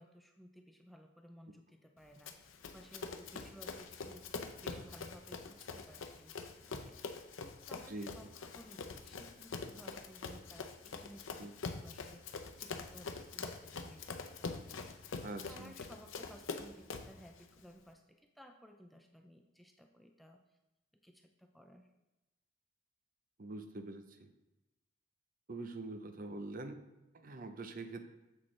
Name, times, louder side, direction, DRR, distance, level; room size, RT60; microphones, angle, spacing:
voice 1, 0.0-4.3 4.6-15.0 15.5-20.4 21.0-21.9, equal, ahead, 3 dB, 0.4 m, -57 dB
Run, 2.3-17.2, left 4 dB, 90° left, 0.6 m, -44 dB
voice 2, 7.9-8.3 11.4-11.5 15.2-15.7 23.4-24.3 25.5-26.8 27.1-28.1, right 2 dB, 45° right, 8 dB, 0.6 m, -44 dB
7.4 x 6.2 x 3.2 m, 1.0 s
head